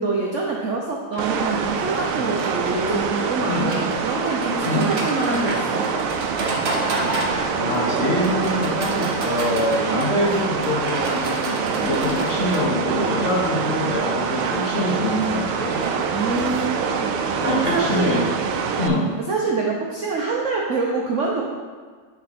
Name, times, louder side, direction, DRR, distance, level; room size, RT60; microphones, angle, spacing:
voice 1, 0.0-5.9 16.1-18.2 19.2-21.4, right 3 dB, 65° right, -2 dB, 0.7 m, -26 dB
Livestock farm animals working animals, 1.1-19.2, right 1 dB, 35° right, 1.1 m, -32 dB
sound 1, 1.2-18.9, right 6 dB, 80° right, 1.5 m, -25 dB
voice 2, 7.6-15.9 17.4-18.3 18.8-19.1, left 1 dB, 40° left, -5 dB, 1.0 m, -24 dB
10.0 x 4.5 x 4.2 m, 1.5 s
omnidirectional pair, 2.4 m